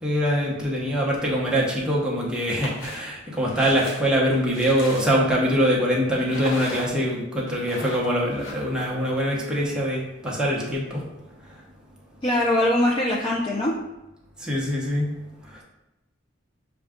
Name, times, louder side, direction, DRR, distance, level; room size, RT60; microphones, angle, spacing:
voice 1, 0.0-11.0 11.5-11.6 14.4-15.1 15.5-15.6, equal, 5° right, -5 dB, 0.9 m, -23 dB
sound 1, 2.4-3.0 3.4-5.3 6.2-7.1 7.5-8.5, left 1 dB, 90° left, 1.4 m, -38 dB
voice 2, 12.2-13.7, left 1 dB, 25° left, -4 dB, 0.5 m, -22 dB
6.2 x 2.3 x 3.5 m, 0.96 s
head